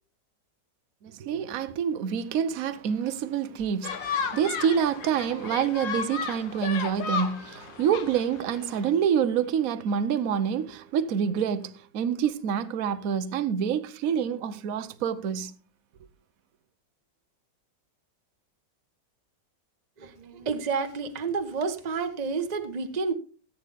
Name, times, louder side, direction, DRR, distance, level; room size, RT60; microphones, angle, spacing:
voice 1, 1.0-15.5, right 8 dB, 60° right, 1.2 m, -27 dB
sound 1, 3.8-8.9, left 6 dB, 85° left, 1.9 m, -34 dB
voice 2, 20.0-23.1, right 5 dB, 30° right, 1.0 m, -30 dB
15.5 x 8.5 x 3.5 m
omnidirectional pair, 1.9 m